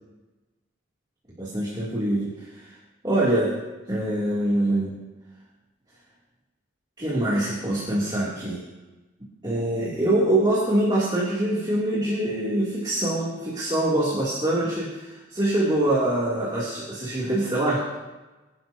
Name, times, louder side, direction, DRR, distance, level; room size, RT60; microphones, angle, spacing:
voice 1, 1.4-2.7 3.0-3.5 3.9-5.0 7.0-8.6 9.4-17.8, right 1 dB, 20° right, -7 dB, 2.7 m, -24 dB
24.5 x 11.5 x 2.8 m, 1.2 s
head